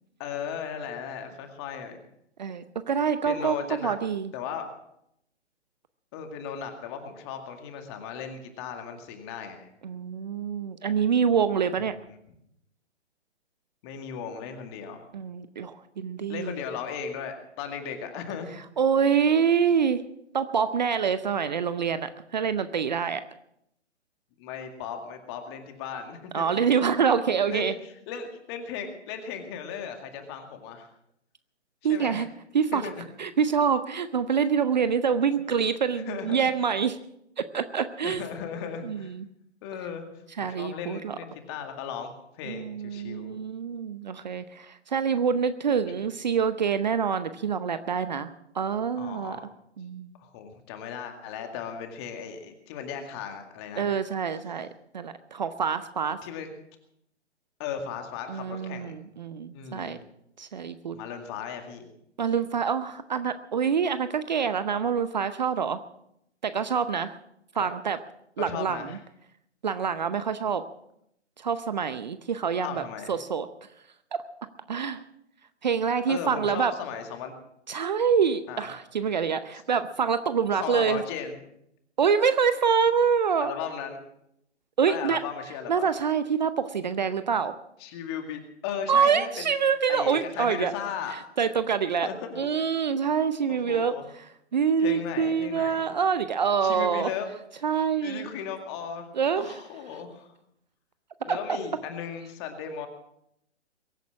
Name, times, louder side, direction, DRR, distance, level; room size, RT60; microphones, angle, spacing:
voice 1, 0.2-2.0 3.3-3.9 4.3-4.7 6.1-9.7 11.9-12.1 13.8-15.0 16.3-18.5 24.4-26.6 27.5-30.9 31.9-32.3 32.7-33.0 35.5-35.6 35.9-36.5 38.0-39.1 39.6-40.1 40.4-42.1 42.4-43.4 45.9-46.0 48.9-49.4 50.2-53.9 56.2-56.5 57.6-59.0 59.5-60.0 60.9-61.9 67.5-67.7 68.4-69.0 72.6-73.2 76.1-77.3 78.5-78.7 80.5-81.4 83.4-84.0 84.8-85.9 87.8-89.5 89.9-91.2 92.0-92.7 93.5-94.1 94.8-96.0 96.6-97.3 98.0-99.1 99.3-100.3 101.2-102.9, left 7 dB, 20° left, 5 dB, 2.1 m, -36 dB
voice 2, 2.4-4.3 9.8-12.0 15.1-16.6 18.8-20.0 20.3-23.2 26.3-27.7 31.8-32.3 32.5-32.9 33.2-37.0 37.4-38.2 38.8-39.2 40.4-41.2 42.5-48.3 48.5-49.4 49.8-50.1 53.8-54.7 54.9-56.2 58.3-60.0 60.4-61.0 62.2-65.8 66.4-67.2 67.5-68.0 68.4-69.0 69.6-70.6 71.4-73.5 74.1-74.2 74.7-75.0 75.6-76.7 77.7-81.0 82.0-83.5 84.8-85.2 85.7-87.5 88.9-90.7 91.1-92.1 92.4-94.2 94.5-97.1 97.6-98.3 99.2-99.5 101.3-101.4, right 6 dB, 40° right, 12 dB, 0.8 m, -26 dB
22.5 x 9.3 x 6.1 m, 0.77 s
figure-of-eight pair, 135°, 35 cm